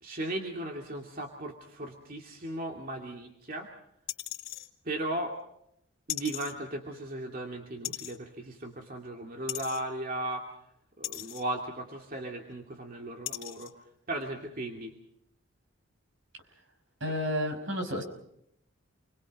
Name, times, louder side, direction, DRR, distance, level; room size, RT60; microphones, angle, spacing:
voice 1, 0.0-3.7 4.8-5.3 6.1-10.5 11.0-13.7 14.1-14.9, right 1 dB, 45° right, 1 dB, 2.6 m, -36 dB
sound 1, 4.1-4.7 6.1-6.5 7.8-8.2 9.5-9.8 11.0-11.4 12.5-12.6 13.3-13.7 14.2-14.3, left 14 dB, 70° left, 3.1 m, -37 dB
voice 2, 17.0-18.0, left 1 dB, 65° right, 5 dB, 5.4 m, -31 dB
29.0 x 22.5 x 5.4 m, 0.76 s
head